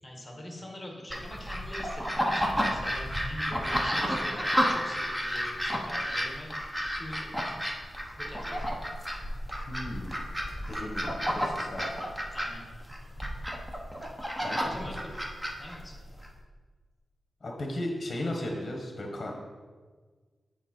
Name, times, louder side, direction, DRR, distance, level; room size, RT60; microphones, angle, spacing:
voice 1, 0.0-6.5 7.0-7.3 8.2-8.7 12.3-12.7 14.4-15.3 15.6-15.9, left 1 dB, 15° left, 0 dB, 1.6 m, -44 dB
sound 1, 1.1-16.3, equal, 10° right, 1.0 m, -31 dB
voice 2, 9.7-10.1 10.7-11.8 14.4-14.9 17.4-19.6, left 1 dB, 40° left, 0 dB, 1.2 m, -36 dB
8.9 x 4.7 x 4.4 m, 1.5 s
wide cardioid pair, 95°, 0 cm